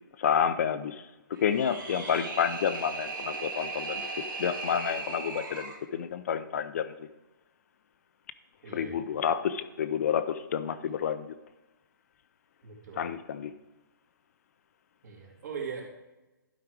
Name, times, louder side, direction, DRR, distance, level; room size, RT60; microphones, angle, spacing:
voice 1, 0.2-1.0 1.4-4.1 4.4-6.9 8.7-11.3 13.0-13.5, left 8 dB, 45° left, 12 dB, 0.4 m, -29 dB
sound 1, 1.3-5.8, right 3 dB, 75° right, 3.0 m, -37 dB
voice 2, 8.6-9.2 12.6-13.1 15.0-15.9, right 6 dB, 50° right, 0 dB, 2.4 m, -40 dB
11.5 x 4.8 x 4.7 m, 1.1 s
hypercardioid pair, 160°, 12 cm